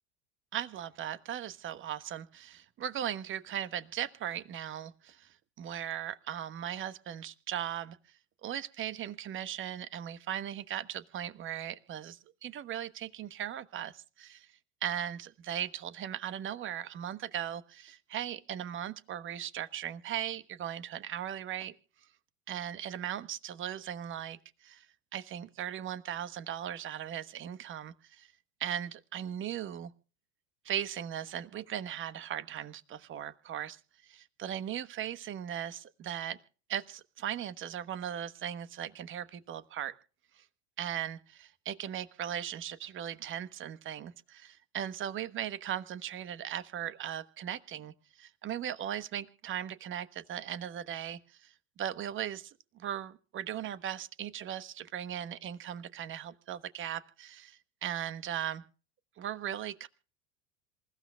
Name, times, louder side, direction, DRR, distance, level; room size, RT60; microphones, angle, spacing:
voice 1, 0.5-8.0 8.4-14.5 14.8-21.7 22.5-24.9 25.1-28.3 28.6-29.9 30.6-36.4 36.7-39.9 40.4-40.5 40.8-58.6 59.2-59.9, right 10 dB, 35° right, 15 dB, 1.2 m, -38 dB
27.0 x 15.0 x 2.3 m, 0.38 s
hypercardioid pair, 85°, 36 cm